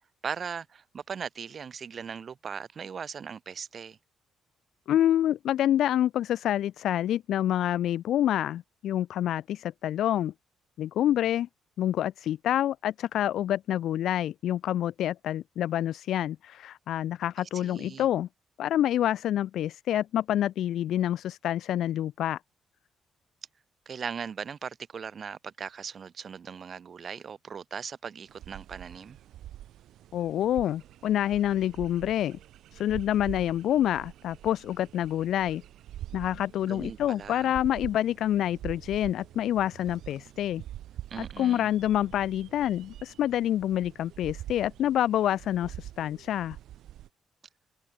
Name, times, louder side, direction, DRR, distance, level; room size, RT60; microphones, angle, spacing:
voice 1, 0.2-4.0 17.4-18.1 23.8-29.2 36.6-37.5 41.1-41.7, right 6 dB, 50° right, 1.5 m, -39 dB
voice 2, 4.9-10.3 10.8-11.5 11.8-18.3 18.6-22.4 30.1-32.4 32.7-35.6 36.1-40.6 41.2-46.6, left 11 dB, 75° left, 0.9 m, -27 dB
sound 1, 28.3-47.1, right 12 dB, 80° right, 7.0 m, -45 dB
cardioid pair, 90°, 0 cm